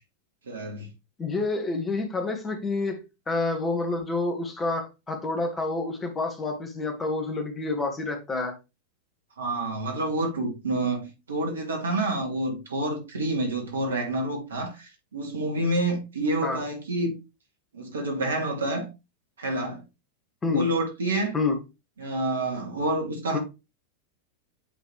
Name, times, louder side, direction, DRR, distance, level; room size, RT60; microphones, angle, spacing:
voice 1, 0.5-0.9 9.4-17.2 17.7-18.9 19.4-19.8 20.5-21.4 22.0-23.4, right 2 dB, 70° right, 2.4 m, -28 dB
voice 2, 1.2-8.5 16.4-16.6 20.4-20.7 21.3-21.6 23.3-23.4, left 3 dB, 20° left, 1.8 m, -28 dB
8.2 x 3.8 x 3.3 m
figure-of-eight pair, 90°, 0 cm